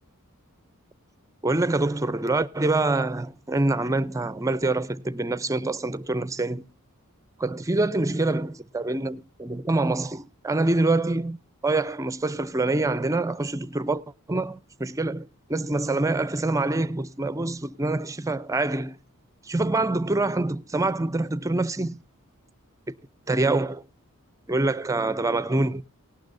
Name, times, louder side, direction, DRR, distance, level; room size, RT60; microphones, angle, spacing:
voice 1, 1.4-6.6 7.4-11.4 11.6-14.0 14.3-19.0 19.5-22.0 23.3-23.8 24.5-25.8, right 2 dB, 15° right, 0.5 m, -25 dB
18.0 x 12.0 x 2.6 m
head